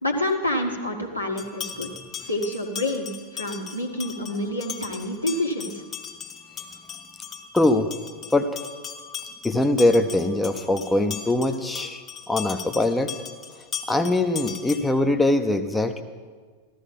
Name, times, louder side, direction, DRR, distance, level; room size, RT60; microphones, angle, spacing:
voice 1, 0.0-1.9 2.3-5.8, left 1 dB, 85° left, 1 dB, 1.6 m, -28 dB
sound 1, 1.4-15.0, left 7 dB, 25° left, 1.4 m, -38 dB
voice 2, 7.5-7.9 8.3-8.6 9.4-13.1 13.9-16.0, left 2 dB, 5° left, 6 dB, 0.8 m, -22 dB
14.5 x 13.0 x 5.4 m, 1.5 s
figure-of-eight pair, 90°, 0 cm